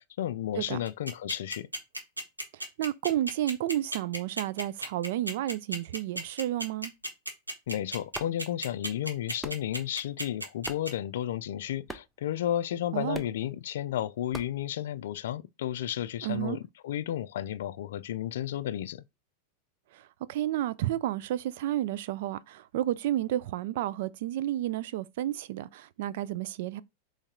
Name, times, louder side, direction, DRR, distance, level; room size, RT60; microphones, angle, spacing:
voice 1, 0.0-1.7 7.7-19.0, left 11 dB, 60° left, 0.3 m, -33 dB
sound 1, 0.9-10.9, right 1 dB, 85° right, 1.0 m, -34 dB
voice 2, 2.5-6.9 12.9-13.2 16.2-16.6 19.9-26.8, right 13 dB, 55° right, 0.3 m, -31 dB
sound 2, 8.0-15.4, right 1 dB, 5° right, 0.6 m, -47 dB
4.0 x 3.2 x 3.7 m
figure-of-eight pair, 90°, 0 cm